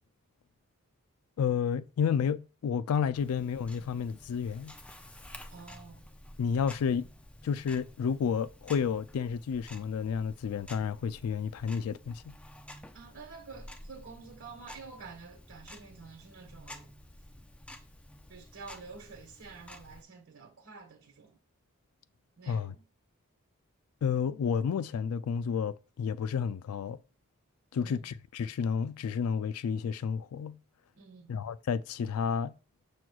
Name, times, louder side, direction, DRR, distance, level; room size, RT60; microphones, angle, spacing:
voice 1, 1.4-4.7 6.4-7.1 7.4-12.4 22.5-22.7 24.0-27.0 27.7-30.6 31.3-32.5, left 6 dB, 85° left, 0.3 m, -31 dB
Tick-tock, 3.1-20.0, left 1 dB, 5° left, 0.4 m, -51 dB
voice 2, 5.5-6.1 12.9-16.9 18.3-21.4 22.4-22.8 27.7-28.1 30.9-31.4, right 4 dB, 70° right, 1.3 m, -49 dB
6.9 x 6.1 x 2.3 m
head